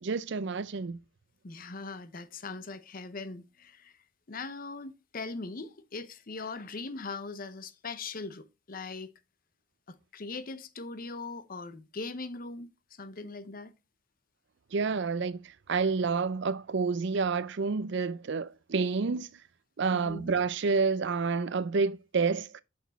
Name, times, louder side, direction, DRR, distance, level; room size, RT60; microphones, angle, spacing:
voice 1, 0.0-1.0 14.7-19.3 19.8-22.6, right 4 dB, 60° right, 0.5 m, -29 dB
voice 2, 1.4-4.0 4.3-9.1 9.9-13.7 19.9-20.3, left 3 dB, 45° left, 0.7 m, -40 dB
6.3 x 6.0 x 4.1 m
head